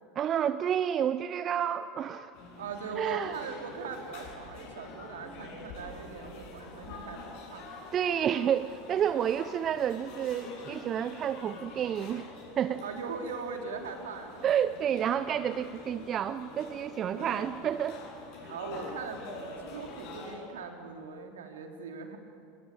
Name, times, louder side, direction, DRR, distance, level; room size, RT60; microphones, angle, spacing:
voice 1, 0.2-2.3 3.0-3.4 7.9-12.3 12.6-12.8 14.4-18.0, right 9 dB, 35° right, 13 dB, 0.8 m, -30 dB
sound 1, 2.3-20.4, left 3 dB, 55° left, 7.8 m, -46 dB
voice 2, 2.6-7.2 7.5-7.7 12.8-14.4 17.1-17.3 18.5-22.2, right 5 dB, 70° right, 4 dB, 3.3 m, -40 dB
24.0 x 23.0 x 8.6 m, 2.5 s
figure-of-eight pair, 80°, 0 cm